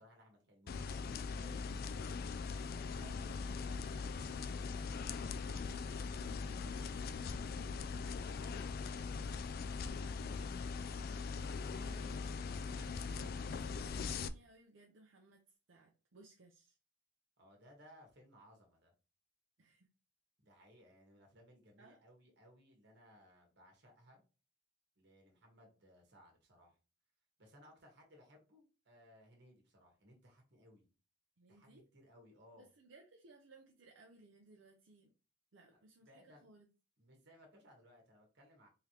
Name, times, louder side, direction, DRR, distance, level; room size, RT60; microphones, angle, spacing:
voice 1, 0.0-1.7 17.4-18.9 20.4-24.2 25.0-26.8 27.4-30.9 31.5-32.7 35.6-36.5 37.0-38.7, equal, 60° right, 1 dB, 1.5 m, -63 dB
sound 1, 0.7-14.3, left 5 dB, 50° left, 0.3 m, -41 dB
voice 2, 3.0-4.9 11.7-12.4 12.7-15.4 15.7-16.8 19.6-19.9 21.8-22.0 31.4-31.8 32.5-35.1 35.5-36.7, right 2 dB, 80° right, 1 dB, 0.6 m, -62 dB
3.7 x 3.3 x 2.9 m, 0.33 s
head